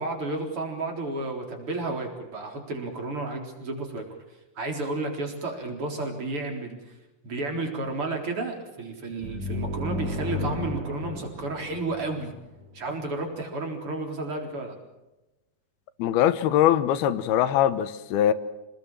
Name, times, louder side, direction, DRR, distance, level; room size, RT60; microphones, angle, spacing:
voice 1, 0.0-4.0 4.6-7.0 7.2-12.3 12.7-14.8, right 2 dB, 35° right, 3 dB, 4.5 m, -32 dB
sound 1, 9.2-12.8, left 2 dB, 60° right, 4.4 m, -33 dB
voice 2, 16.0-18.3, left 11 dB, 85° left, 14 dB, 3.0 m, -22 dB
27.5 x 20.0 x 7.5 m, 1.0 s
omnidirectional pair, 4.3 m